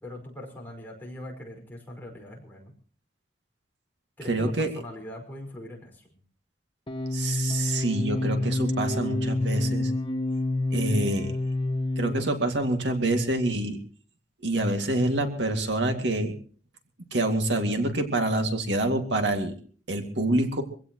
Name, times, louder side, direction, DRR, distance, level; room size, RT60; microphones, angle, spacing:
voice 1, 0.0-2.7 4.2-6.1, left 1 dB, 10° left, -1 dB, 5.3 m, -41 dB
voice 2, 4.3-4.7 7.1-9.9 10.7-11.3 12.0-13.8 14.4-16.3 17.1-19.5 19.9-20.6, right 1 dB, 75° right, 4 dB, 2.3 m, -26 dB
sound 1, 6.9-12.5, left 2 dB, 30° left, 1.2 m, -28 dB
24.5 x 16.5 x 3.1 m, 0.42 s
head